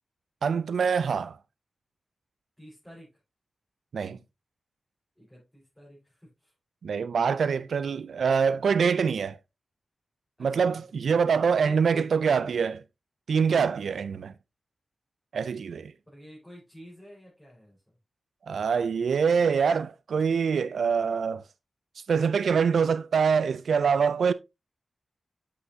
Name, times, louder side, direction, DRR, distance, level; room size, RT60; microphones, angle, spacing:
voice 1, 0.4-1.4 3.9-4.2 6.8-9.4 10.4-12.8 13.3-14.3 15.3-15.9 18.5-21.4 22.1-24.3, right 6 dB, 85° right, 0.3 m, -25 dB
voice 2, 2.6-3.2 5.2-6.5 10.4-11.2 11.6-12.1 16.1-17.8, equal, 5° left, 4.6 m, -49 dB
8.1 x 5.5 x 2.7 m
cardioid pair, 50°, 0 cm